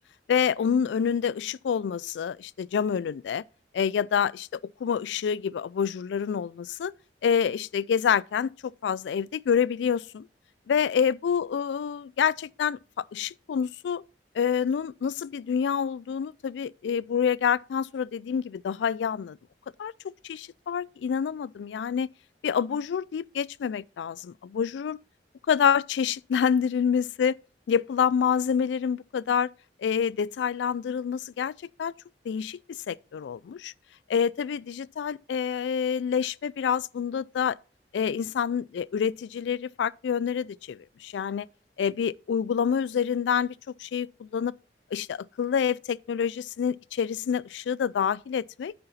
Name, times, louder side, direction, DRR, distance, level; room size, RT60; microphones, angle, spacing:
voice 1, 0.3-3.4 3.7-6.9 7.2-8.5 8.8-10.3 10.7-12.8 13.1-14.0 14.3-19.4 19.8-22.1 22.4-25.0 25.5-27.3 27.7-29.5 29.8-31.5 31.8-31.9 32.3-33.7 34.1-37.6 37.9-41.5 41.8-43.5 43.8-44.5 44.9-48.7, left 7 dB, 85° left, 0.3 m, -27 dB
9.8 x 6.7 x 4.1 m
head